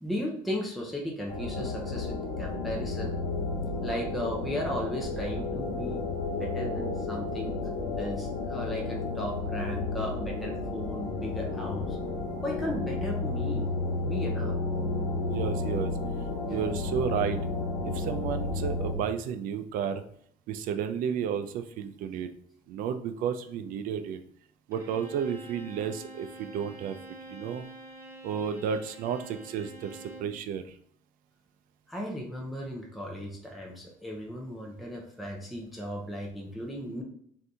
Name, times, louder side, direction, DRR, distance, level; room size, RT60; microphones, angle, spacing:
voice 1, 0.0-3.1 3.8-6.0 6.4-7.6 8.0-12.0 12.4-13.7 14.0-14.5 31.9-37.0, equal, ahead, -2 dB, 0.6 m, -36 dB
sound 1, 1.3-19.0, left 3 dB, 90° left, 0.9 m, -32 dB
voice 2, 15.3-15.9 16.5-17.5 17.8-20.0 20.5-22.3 22.7-24.2 24.7-27.0 27.3-27.7 28.2-30.8, right 8 dB, 65° right, 9 dB, 0.4 m, -32 dB
Bowed string instrument, 24.7-30.4, right 1 dB, 20° right, 1.0 m, -47 dB
2.7 x 2.6 x 3.5 m, 0.66 s
cardioid pair, 140°, 15 cm